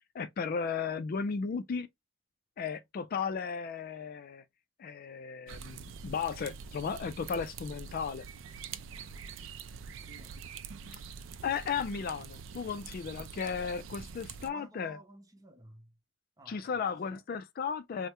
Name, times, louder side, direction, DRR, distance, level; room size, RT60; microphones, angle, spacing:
voice 1, 0.1-1.9 2.6-4.4 4.8-8.3 11.4-15.0 16.5-18.1, left 6 dB, 50° left, 0.3 m, -35 dB
sound 1, 5.5-14.5, right 6 dB, 80° right, 0.4 m, -45 dB
voice 2, 14.4-15.9 16.4-16.8 17.1-17.2, right 1 dB, 20° right, 0.7 m, -53 dB
3.4 x 2.1 x 2.8 m
head